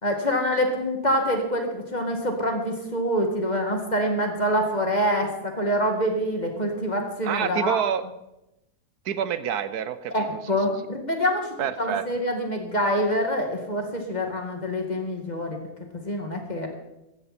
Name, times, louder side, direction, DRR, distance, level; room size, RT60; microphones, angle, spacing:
voice 1, 0.0-7.8 10.1-15.6 15.9-16.7, equal, 25° left, 3 dB, 2.2 m, -26 dB
voice 2, 7.2-8.0 9.1-10.3 11.6-12.0, right 9 dB, 75° right, 13 dB, 1.2 m, -27 dB
15.0 x 14.0 x 4.3 m, 0.91 s
omnidirectional pair, 1.7 m